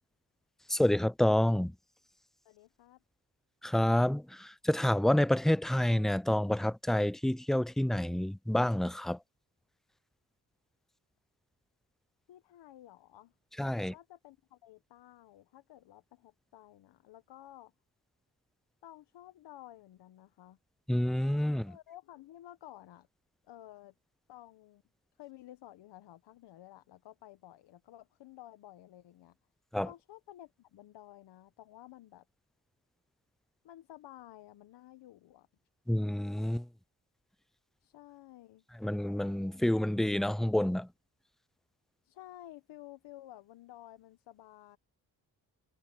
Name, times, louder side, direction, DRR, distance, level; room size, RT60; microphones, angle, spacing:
voice 1, 0.7-1.7 3.6-9.2 13.6-13.9 20.9-21.7 29.7-29.9 35.9-36.6 38.8-40.9, left 1 dB, ahead, 0.3 m, -28 dB
voice 2, 2.4-3.0 12.3-13.3 13.8-17.7 18.8-20.6 21.7-23.1 23.5-23.9 24.3-24.8 25.2-29.3 29.8-32.2 33.6-35.5 37.8-38.6 42.0-44.8, left 14 dB, 80° left, 1.3 m, -53 dB
supercardioid pair, 50°, 42 cm